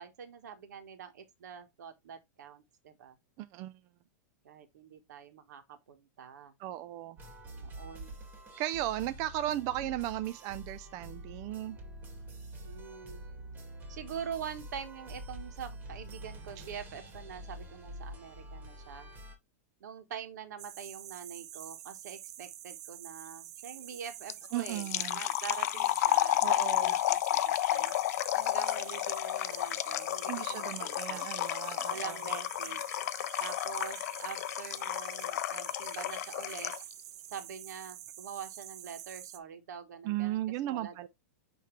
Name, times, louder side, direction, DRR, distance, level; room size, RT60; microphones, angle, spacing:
voice 1, 0.0-3.1 4.4-6.5 7.4-8.2 12.6-13.2 13.9-19.1 19.8-27.9 28.3-31.3 31.9-33.0 33.4-36.7 37.3-41.1, right 7 dB, 85° right, 1.6 m, -45 dB
voice 2, 3.4-3.8 6.6-7.2 8.6-11.8 16.6-16.7 24.5-25.2 26.4-26.9 30.3-32.2 40.0-41.1, right 14 dB, 40° right, 0.4 m, -36 dB
sound 1, 7.2-19.4, right 1 dB, 20° right, 2.0 m, -46 dB
sound 2, 20.6-39.4, right 12 dB, 65° right, 0.8 m, -47 dB
sound 3, 24.3-36.9, left 14 dB, 65° left, 0.4 m, -32 dB
9.3 x 3.2 x 3.3 m
supercardioid pair, 145°, 9 cm